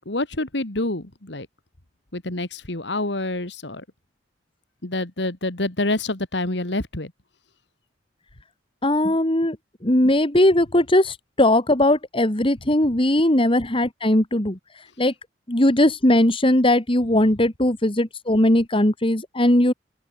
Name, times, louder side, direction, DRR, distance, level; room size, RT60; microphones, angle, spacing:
voice 1, 0.0-1.5 2.1-3.8 4.8-7.1, left 2 dB, 70° left, 2.6 m, -27 dB
voice 2, 8.8-9.6 9.8-14.6 15.0-15.1 15.5-19.7, left 1 dB, 30° left, 2.6 m, -19 dB
open air
head